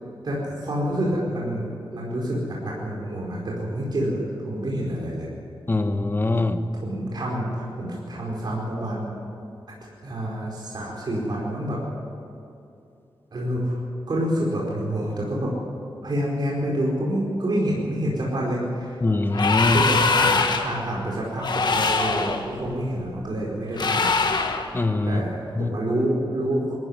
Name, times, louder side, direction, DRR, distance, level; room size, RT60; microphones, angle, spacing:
voice 1, 0.2-5.3 6.7-9.1 10.0-11.8 13.3-13.8 14.1-15.5 16.0-19.0 19.7-24.1 25.0-26.7, right 1 dB, 50° right, -4 dB, 4.7 m, -27 dB
voice 2, 5.7-6.6 19.0-19.8 24.7-25.2 25.6-25.7, left 2 dB, 25° left, 9 dB, 1.1 m, -22 dB
sound 1, 19.3-20.8 21.4-22.4 23.8-24.7, left 4 dB, 55° left, 1.6 m, -22 dB
22.0 x 14.5 x 9.7 m, 2.7 s
wide cardioid pair, 150°, 9 cm